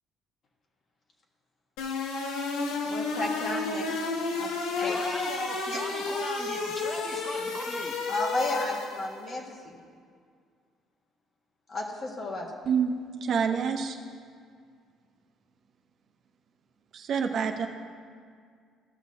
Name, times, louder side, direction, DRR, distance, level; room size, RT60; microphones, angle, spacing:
sound 1, 1.8-9.2, left 3 dB, 90° left, 0.8 m, -31 dB
voice 1, 2.8-4.0 4.3-5.0 5.7-5.8 8.1-9.8 11.7-12.5, left 2 dB, 50° left, 0 dB, 1.6 m, -33 dB
voice 2, 4.9-8.0, equal, ahead, 4 dB, 0.8 m, -39 dB
voice 3, 12.7-14.0 16.9-17.7, right 6 dB, 60° right, 5 dB, 0.7 m, -27 dB
14.5 x 6.1 x 2.8 m, 2.1 s
supercardioid pair, 80°, 0 cm